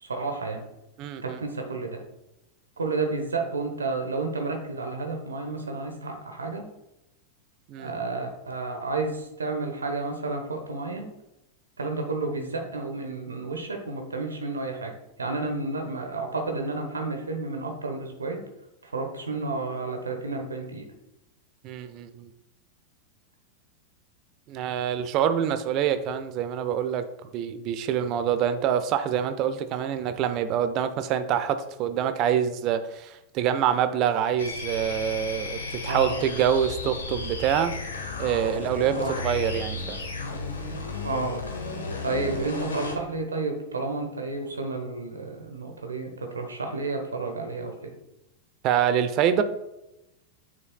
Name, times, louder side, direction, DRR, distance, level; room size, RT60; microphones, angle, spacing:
voice 1, 0.0-0.6 1.2-2.0 2.8-6.7 7.8-11.1 11.8-18.4 18.8-20.9 35.9-36.2 38.9-39.2 41.0-41.4 42.0-47.9, right 3 dB, 75° right, 4 dB, 1.1 m, -31 dB
voice 2, 1.0-1.4 7.7-7.9 21.6-22.3 24.5-37.7 38.2-40.0 48.6-49.4, right 9 dB, 40° right, 11 dB, 0.6 m, -26 dB
sound 1, 34.4-43.0, left 3 dB, 70° left, 1.2 m, -34 dB
7.4 x 6.4 x 2.3 m, 0.90 s
figure-of-eight pair, 90°, 0 cm